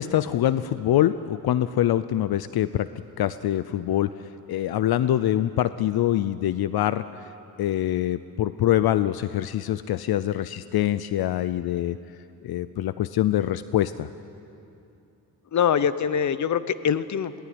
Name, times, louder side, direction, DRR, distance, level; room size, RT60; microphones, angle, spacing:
voice 1, 0.0-2.9 3.2-4.1 4.5-7.2 7.6-12.0 12.4-14.1, left 12 dB, 75° left, 14 dB, 0.6 m, -24 dB
voice 2, 15.5-17.4, left 8 dB, 50° left, 14 dB, 0.8 m, -23 dB
22.0 x 17.5 x 9.4 m, 2.8 s
wide cardioid pair, 120°, 38 cm